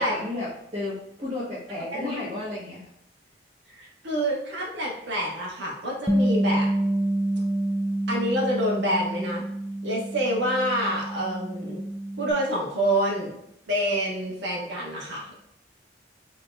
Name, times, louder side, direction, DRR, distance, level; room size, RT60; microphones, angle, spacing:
voice 1, 0.0-2.8, left 2 dB, 30° right, -9 dB, 1.3 m, -33 dB
voice 2, 3.7-6.7 8.1-9.4 9.8-11.9 12.2-13.4 13.7-15.3, equal, 70° right, -3 dB, 1.3 m, -27 dB
Bass guitar, 6.1-12.3, right 1 dB, 10° right, 0.5 m, -27 dB
3.8 x 3.6 x 3.3 m, 0.76 s
head